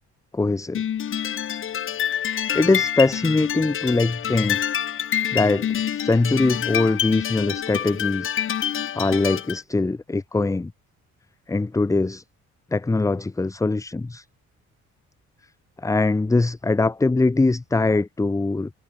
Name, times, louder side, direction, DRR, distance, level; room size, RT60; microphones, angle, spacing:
voice 1, 0.3-0.8 2.5-4.6 5.3-8.4 8.9-10.7 11.5-12.2 12.7-14.2 15.8-18.7, left 3 dB, 10° left, 0.6 m, -22 dB
sound 1, 0.7-9.6, left 9 dB, 45° left, 0.7 m, -27 dB
cardioid pair, 90°, 30 cm